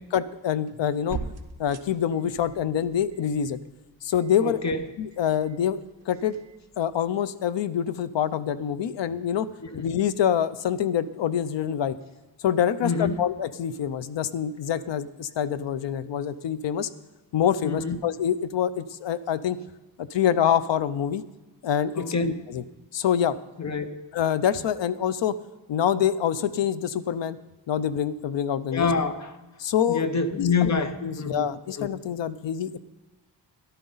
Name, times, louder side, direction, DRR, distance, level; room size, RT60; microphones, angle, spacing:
voice 1, 0.1-1.2 1.6-3.6 4.0-4.6 5.0-6.4 6.8-9.5 9.8-12.0 12.4-16.9 17.3-19.6 20.0-21.2 21.6-22.6 22.9-23.4 24.1-25.4 25.7-27.4 27.7-28.9 29.6-30.1 30.4-30.7 31.0-32.8, left 9 dB, 75° left, 15 dB, 0.6 m, -26 dB
sound 1, 0.7-7.1, right 5 dB, 35° right, 1.0 m, -43 dB
voice 2, 4.4-4.8 9.6-9.9 12.8-13.2 17.6-18.0 22.0-22.4 23.6-24.1 28.7-29.3 29.9-31.5 31.8-31.9, left 4 dB, 40° left, 9 dB, 0.7 m, -26 dB
13.0 x 11.5 x 3.9 m, 1.1 s
wide cardioid pair, 140°, 44 cm